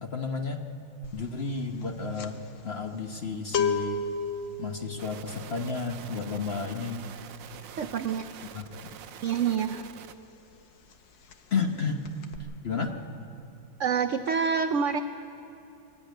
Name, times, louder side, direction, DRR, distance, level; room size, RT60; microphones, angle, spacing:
voice 1, 0.0-0.6 1.1-4.0 4.6-7.0 8.5-8.8 11.5-12.0 12.6-12.9, left 4 dB, 40° left, 4 dB, 1.0 m, -32 dB
sound 1, 1.0-1.3 1.6-10.1 10.4-10.6 10.9-11.7 12.0-12.4, left 4 dB, 85° left, 1.8 m, -34 dB
sound 2, 5.0-10.1, right 10 dB, 85° right, 1.4 m, -46 dB
voice 2, 7.8-8.3 9.2-9.9 13.8-15.0, right 6 dB, 70° right, 8 dB, 0.7 m, -27 dB
23.5 x 12.0 x 9.2 m, 2.7 s
omnidirectional pair, 1.9 m